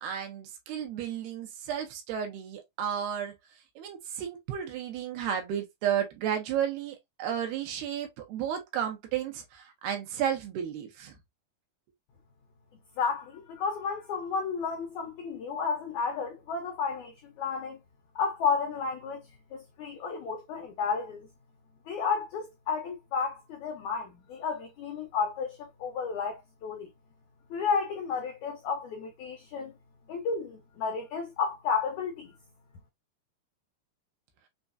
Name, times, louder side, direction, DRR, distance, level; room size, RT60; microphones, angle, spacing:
voice 1, 0.0-3.3 3.8-11.2, right 9 dB, 85° right, 3.0 m, -33 dB
voice 2, 13.0-17.8 18.1-19.2 19.5-21.3 21.9-26.9 27.5-29.7 30.1-32.4, left 5 dB, 90° left, 1.7 m, -32 dB
6.7 x 2.3 x 2.6 m
omnidirectional pair, 4.5 m